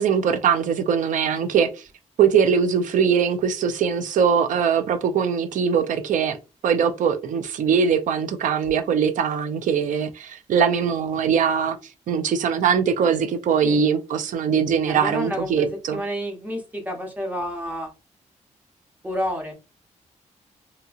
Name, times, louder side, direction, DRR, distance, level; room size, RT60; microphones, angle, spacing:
voice 1, 0.0-1.7 2.2-6.4 6.6-11.8 12.1-16.0, right 7 dB, 85° right, 0.5 m, -21 dB
voice 2, 14.8-17.9 19.0-19.5, equal, 10° right, 0.8 m, -29 dB
2.8 x 2.7 x 2.4 m
wide cardioid pair, 155°, 13 cm